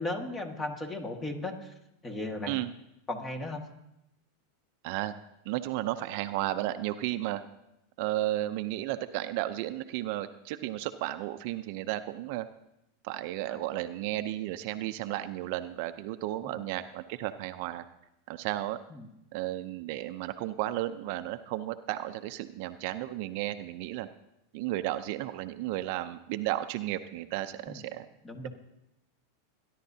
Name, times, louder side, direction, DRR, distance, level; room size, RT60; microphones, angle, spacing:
voice 1, 0.0-1.7 2.0-2.6 3.1-3.6 13.5-13.6 16.5-16.6 18.9-19.1 27.7-27.8 28.2-28.5, left 2 dB, 20° left, 5 dB, 1.7 m, -36 dB
voice 2, 5.5-7.4 8.0-12.5 13.0-17.8 18.3-18.8 19.3-24.1 24.5-28.1, right 15 dB, 60° right, 10 dB, 0.6 m, -33 dB
21.5 x 11.0 x 2.8 m, 0.86 s
hypercardioid pair, 120°, 0 cm